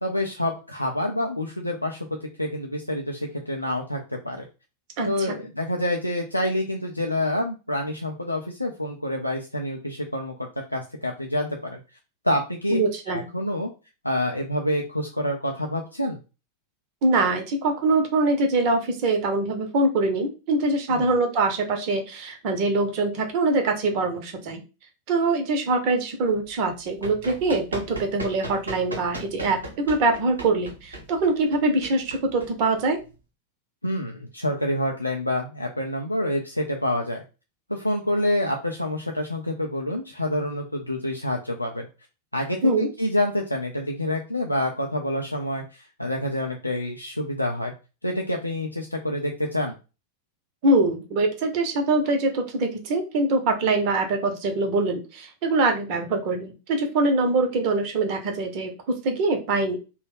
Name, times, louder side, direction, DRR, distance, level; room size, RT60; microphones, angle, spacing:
voice 1, 0.0-4.4 5.1-11.8 12.2-12.8 13.1-13.7 14.0-16.2 20.9-21.1 33.8-37.2 37.7-41.9 42.3-47.7 48.0-49.8, left 1 dB, 85° left, 1 dB, 0.4 m, -27 dB
voice 2, 5.0-5.4 12.7-13.2 17.0-24.6 25.1-33.0 42.6-42.9 50.6-59.8, right 2 dB, 45° right, 5 dB, 0.8 m, -23 dB
Run, 26.8-33.1, right 2 dB, 75° right, 0.9 m, -38 dB
3.0 x 2.2 x 3.4 m, 0.30 s
figure-of-eight pair, 90°, 0 cm